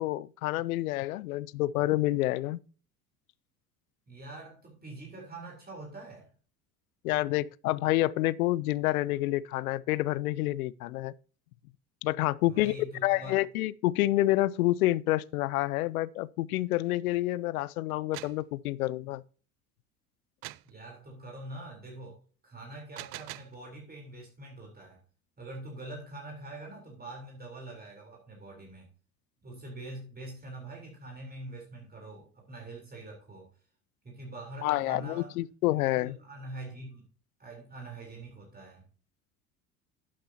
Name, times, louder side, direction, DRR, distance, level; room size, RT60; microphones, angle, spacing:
voice 1, 0.0-2.6 7.0-11.1 12.0-12.7 13.0-19.2 34.6-36.2, left 17 dB, 75° left, 0.6 m, -28 dB
voice 2, 4.1-6.3 12.4-13.4 20.6-22.2 22.4-25.0 25.4-28.9 29.4-33.5 34.0-35.3 35.9-37.0 37.4-38.9, right 2 dB, 20° right, 3.7 m, -44 dB
sound 1, 17.9-18.5 20.4-20.7 22.7-23.6, right 21 dB, 50° right, 0.6 m, -43 dB
12.0 x 8.8 x 2.8 m
hypercardioid pair, 70°, 44 cm